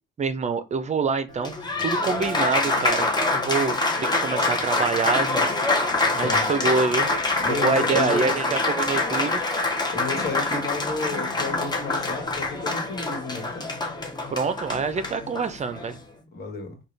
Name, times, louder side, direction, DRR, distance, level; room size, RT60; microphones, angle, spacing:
voice 1, 0.2-5.5 6.1-7.1 7.5-9.4 14.3-16.0, right 5 dB, 35° right, 0.5 m, -26 dB
Applause, 1.3-16.0, left 2 dB, 20° left, 0.8 m, -25 dB
voice 2, 7.4-8.3 9.9-13.7 16.2-16.8, left 3 dB, 50° left, 1.4 m, -31 dB
3.8 x 2.3 x 3.2 m
cardioid pair, 90°, 20 cm